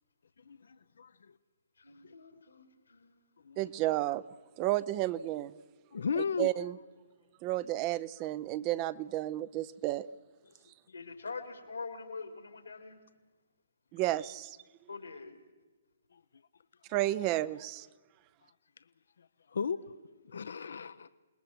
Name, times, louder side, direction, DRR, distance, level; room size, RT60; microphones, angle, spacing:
voice 1, 0.5-1.1 2.0-2.1 3.4-3.6 5.9-6.5 16.1-16.2 19.5-19.8 20.2-21.1, left 6 dB, 70° left, 13 dB, 0.8 m, -35 dB
voice 2, 1.8-3.3 10.9-13.0 14.9-15.3, left 4 dB, 90° left, 6 dB, 3.2 m, -44 dB
voice 3, 3.6-4.2 4.6-5.5 6.2-6.8 7.4-10.1 13.9-14.6 16.9-17.9, right 15 dB, 30° right, 18 dB, 0.7 m, -32 dB
28.0 x 20.5 x 6.1 m, 1.2 s
hypercardioid pair, 135°, 0 cm